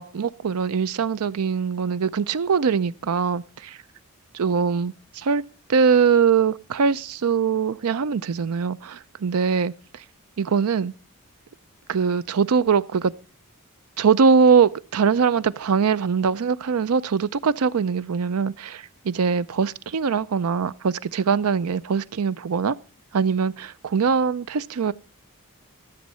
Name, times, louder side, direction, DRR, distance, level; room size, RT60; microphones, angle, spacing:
voice 1, 0.0-3.8 4.3-5.4 5.7-8.9 9.2-9.7 10.4-10.9 11.9-13.1 14.0-22.8 23.1-24.9, right 6 dB, 85° right, 0.5 m, -22 dB
13.0 x 7.3 x 5.5 m
head